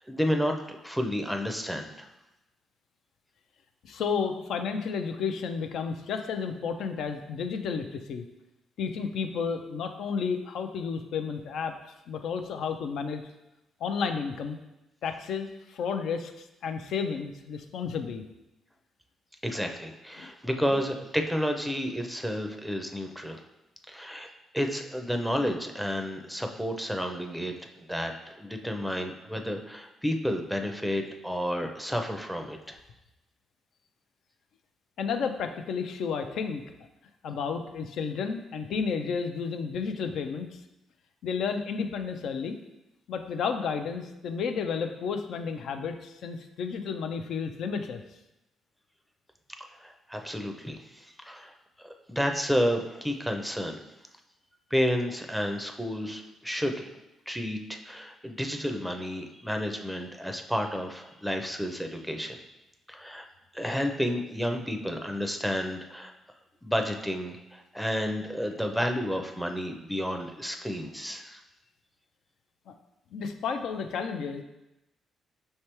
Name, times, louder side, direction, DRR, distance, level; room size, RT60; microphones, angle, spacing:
voice 1, 0.1-2.1 19.4-23.4 23.9-24.3 24.5-28.1 28.4-32.8 49.8-51.5 51.8-53.8 54.7-56.9 57.3-62.4 62.9-63.3 63.5-66.1 66.6-71.4, equal, ahead, 4 dB, 0.5 m, -31 dB
voice 2, 3.8-8.2 8.8-11.7 12.1-13.2 13.8-14.6 15.0-18.2 20.2-20.3 35.0-36.6 37.2-40.6 41.2-42.6 43.1-48.0 72.7-72.8 73.1-74.4, left 6 dB, 75° left, 7 dB, 0.4 m, -32 dB
5.5 x 3.3 x 2.9 m, 0.94 s
cardioid pair, 90°, 0 cm